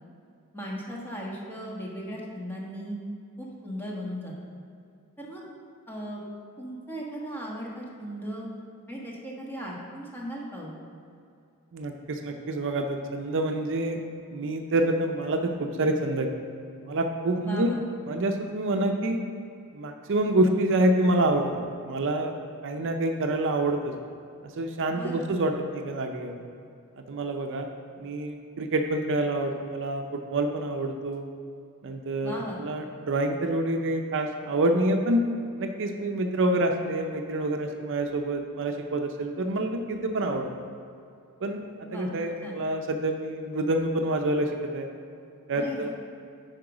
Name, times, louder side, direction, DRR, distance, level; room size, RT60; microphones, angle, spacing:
voice 1, 0.5-3.0 3.4-4.3 5.2-5.5 5.9-6.2 6.6-8.5 8.9-10.7 17.4-17.8 24.9-25.3 32.2-32.6 41.9-42.1 42.4-42.6 45.5-45.9, equal, 10° left, -3 dB, 1.3 m, -37 dB
voice 2, 11.7-14.0 14.3-16.3 16.8-17.7 18.1-19.2 19.7-22.3 22.6-23.9 24.4-26.4 27.0-27.7 28.0-31.3 31.8-35.3 35.6-40.5 41.4-41.6 41.9-44.9 45.5-45.9, right 1 dB, 55° right, 4 dB, 0.5 m, -27 dB
9.8 x 4.8 x 4.9 m, 2.5 s
head